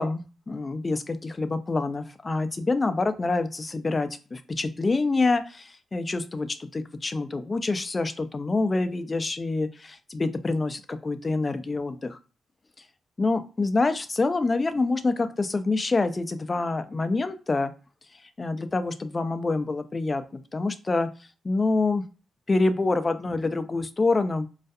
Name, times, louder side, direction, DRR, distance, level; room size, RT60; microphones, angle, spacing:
voice 1, 0.0-12.2 13.2-17.7 18.4-21.1 21.4-22.0 22.5-24.5, left 3 dB, 25° left, 10 dB, 0.3 m, -26 dB
2.3 x 2.1 x 2.6 m, 0.34 s
cardioid pair, 115°, 0 cm